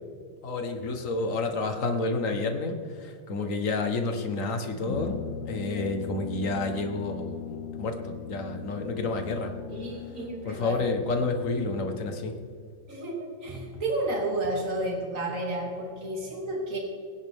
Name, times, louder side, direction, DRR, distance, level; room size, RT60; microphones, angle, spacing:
voice 1, 0.4-5.2 5.5-9.5 10.4-12.3, left 3 dB, 45° left, 5 dB, 1.6 m, -30 dB
Brass instrument, 4.8-12.3, left 8 dB, 75° left, 1.4 m, -39 dB
voice 2, 9.7-10.8 12.9-16.8, right 2 dB, 40° right, -2 dB, 3.0 m, -31 dB
22.5 x 10.0 x 3.7 m, 2.3 s
omnidirectional pair, 2.0 m